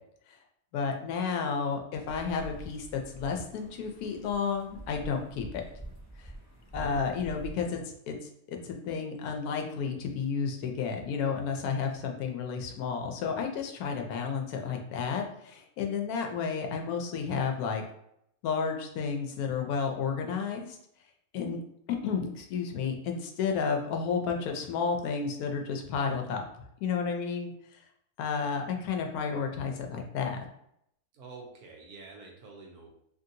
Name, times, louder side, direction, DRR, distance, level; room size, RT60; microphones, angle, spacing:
voice 1, 0.7-5.6 6.2-6.3 6.7-7.8 8.1-8.2 8.5-17.8 18.4-20.8 21.3-21.6 21.9-26.4 26.8-27.5 28.2-30.4, left 5 dB, 85° left, 3 dB, 1.1 m, -31 dB
sound 1, 2.1-7.5, right 1 dB, 15° right, 0.8 m, -46 dB
voice 2, 31.1-32.9, right 3 dB, 80° right, 0 dB, 1.3 m, -47 dB
3.1 x 2.7 x 2.5 m, 0.74 s
omnidirectional pair, 1.5 m